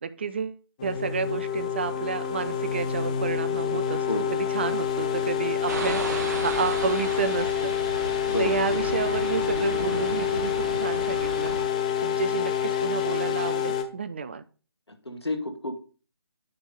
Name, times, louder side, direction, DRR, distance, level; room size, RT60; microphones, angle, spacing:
voice 1, 0.0-7.7 8.4-11.5 12.0-14.4, right 6 dB, 25° right, 13 dB, 0.4 m, -30 dB
sound 1, 0.8-13.8, left 9 dB, 15° left, 0.6 m, -27 dB
voice 2, 4.1-4.4 8.3-8.5 15.1-15.8, left 2 dB, 80° left, 6 dB, 1.9 m, -30 dB
sound 2, 5.7-11.6, right 2 dB, 40° right, 1.5 m, -34 dB
9.4 x 3.5 x 6.7 m, 0.37 s
figure-of-eight pair, 150°, 14 cm